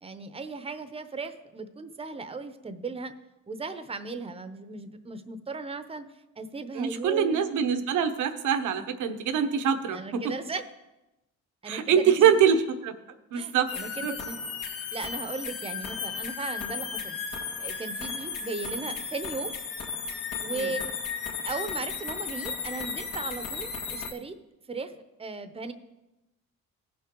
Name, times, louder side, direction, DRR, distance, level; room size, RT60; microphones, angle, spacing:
voice 1, 0.0-3.1 3.5-6.1 6.4-7.4 9.9-10.6 11.6-12.4 13.3-14.4 14.9-17.2 17.6-19.5 20.4-20.8 21.4-24.4 24.7-24.9 25.2-25.7, right 3 dB, 20° right, 10 dB, 0.8 m, -37 dB
voice 2, 6.7-10.2 11.6-12.9 13.3-13.7 14.0-14.1 20.5-20.7, right 8 dB, 80° right, 8 dB, 1.0 m, -24 dB
sound 1, 13.7-24.1, left 5 dB, 80° left, 1.9 m, -35 dB
17.0 x 5.8 x 3.8 m, 0.98 s
cardioid pair, 90°, 30 cm